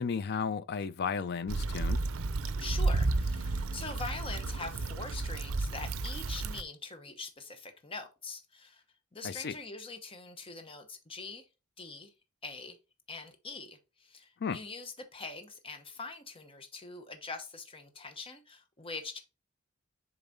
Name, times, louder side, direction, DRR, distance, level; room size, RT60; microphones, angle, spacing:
voice 1, 0.0-2.0 9.2-9.6 14.4-14.6, left 5 dB, 50° left, 0.4 m, -34 dB
Stream / Traffic noise roadway noise / Trickle dribble, 1.5-6.6, right 3 dB, 75° right, 0.6 m, -32 dB
voice 2, 2.6-8.8 9.1-11.5 11.8-12.1 12.4-12.8 13.1-19.2, left 3 dB, 25° left, 1.0 m, -43 dB
7.0 x 4.0 x 3.9 m
head